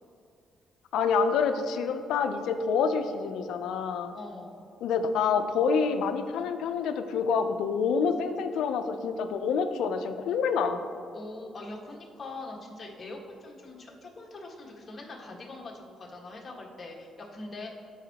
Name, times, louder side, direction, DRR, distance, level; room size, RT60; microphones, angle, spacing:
voice 1, 0.9-4.1 4.8-10.8, left 5 dB, 85° left, 9 dB, 0.5 m, -27 dB
voice 2, 4.1-4.6 11.1-17.7, left 2 dB, 35° left, -2 dB, 1.5 m, -42 dB
13.0 x 4.7 x 2.9 m, 2.4 s
cardioid pair, 90°, 0 cm